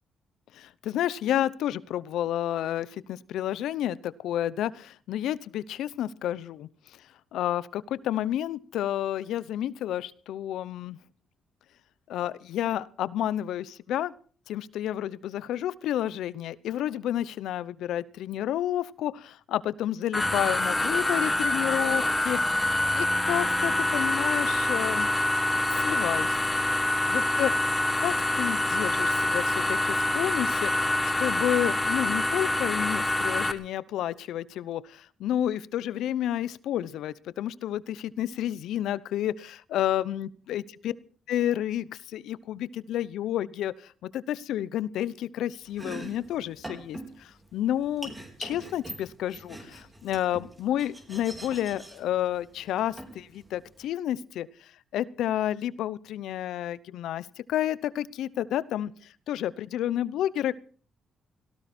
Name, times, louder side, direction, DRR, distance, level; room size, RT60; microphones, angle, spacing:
voice 1, 0.5-6.7 7.3-11.0 12.1-14.1 14.5-22.4 22.9-25.1 25.7-26.4 27.1-27.5 28.0-40.9 41.3-48.1 48.4-60.5, left 12 dB, 80° left, 18 dB, 0.8 m, -30 dB
sound 1, 20.1-33.5, left 1 dB, 15° left, 1.4 m, -26 dB
Domestic sounds home sounds, 45.6-53.8, right 1 dB, 20° right, 4.4 m, -44 dB
18.0 x 17.5 x 4.4 m, 0.42 s
cardioid pair, 90°, 0 cm